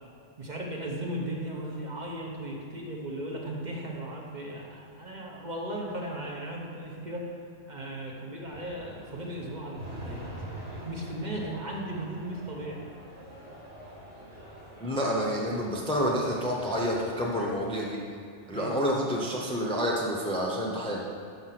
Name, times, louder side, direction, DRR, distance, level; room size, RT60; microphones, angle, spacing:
voice 1, 0.4-7.3 7.7-10.2 10.6-12.8 18.5-19.1, right 1 dB, 40° right, -2 dB, 1.0 m, -36 dB
sound 1, 8.4-17.6, right 1 dB, 80° right, 2.4 m, -45 dB
voice 2, 14.8-18.0 18.5-21.0, equal, 5° left, -3 dB, 0.6 m, -28 dB
6.2 x 5.5 x 5.8 m, 2.4 s
omnidirectional pair, 1.2 m